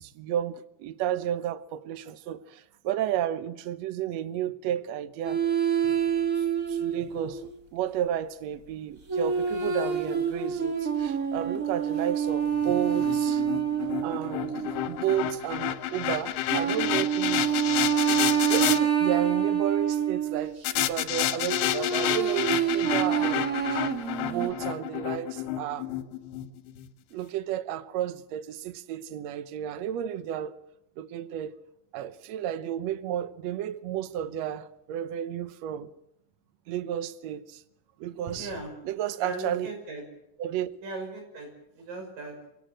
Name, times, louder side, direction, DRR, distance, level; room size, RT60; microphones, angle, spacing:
voice 1, 0.0-5.4 5.8-6.0 6.3-13.4 14.0-17.6 18.5-23.9 24.2-25.9 27.1-30.6 31.0-31.6 31.9-35.9 36.7-37.6 38.0-38.5 38.8-39.7 40.4-40.7, right 11 dB, 80° right, 1.5 m, -32 dB
sound 1, 5.2-7.5 9.1-15.1 16.5-20.5 21.4-24.5, right 7 dB, 35° right, 1.4 m, -27 dB
sound 2, 12.6-18.8 20.7-26.9, left 13 dB, 85° left, 3.0 m, -30 dB
voice 2, 38.3-38.7 39.2-40.0 40.8-41.5 41.8-42.4, right 2 dB, 60° right, 7.5 m, -38 dB
25.5 x 18.0 x 7.6 m
omnidirectional pair, 4.4 m